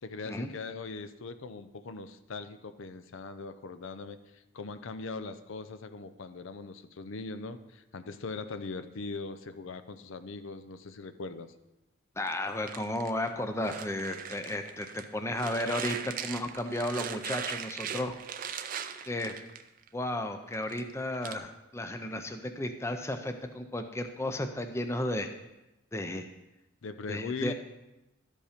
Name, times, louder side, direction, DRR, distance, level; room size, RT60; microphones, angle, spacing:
voice 1, 0.0-11.5 26.8-27.5, left 4 dB, 70° left, 10 dB, 0.5 m, -40 dB
voice 2, 12.2-18.1 19.1-19.4 19.9-25.3 25.9-26.3 27.1-27.5, left 1 dB, 15° left, 7 dB, 0.5 m, -33 dB
sound 1, 12.3-15.1 15.4-19.9 20.3-21.4, right 8 dB, 40° right, 0.4 m, -39 dB
12.5 x 5.3 x 5.0 m, 0.96 s
head